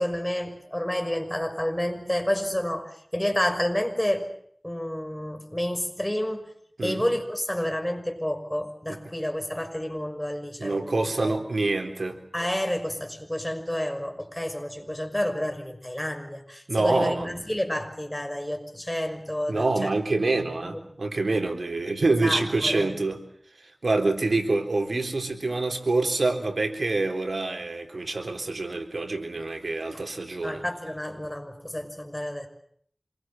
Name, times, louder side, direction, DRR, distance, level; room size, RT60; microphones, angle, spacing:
voice 1, 0.0-4.3 4.6-6.5 6.8-11.0 11.2-11.3 12.3-19.9 20.6-20.8 22.2-22.9 29.9-30.0 30.4-32.5, left 1 dB, 15° left, 6 dB, 5.9 m, -30 dB
voice 2, 10.6-12.2 16.7-17.3 19.5-23.2 23.8-30.6, right 2 dB, 90° right, 4 dB, 3.8 m, -26 dB
27.0 x 22.5 x 7.7 m, 0.63 s
wide cardioid pair, 50°, 0 cm